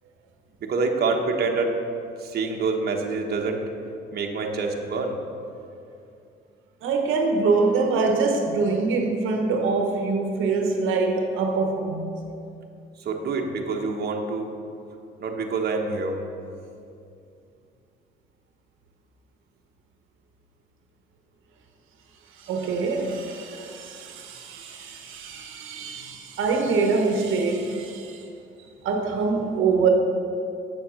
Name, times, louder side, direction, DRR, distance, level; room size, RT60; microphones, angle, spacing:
voice 1, 0.6-1.7 2.2-3.6 4.1-5.2 13.0-14.5 15.2-16.2, right 4 dB, 55° right, 1 dB, 1.1 m, -26 dB
voice 2, 6.8-12.1 22.3-28.3 28.8-29.9, right 4 dB, 85° right, 3 dB, 1.0 m, -24 dB
7.7 x 7.0 x 6.3 m, 2.6 s
cardioid pair, 90°, 20 cm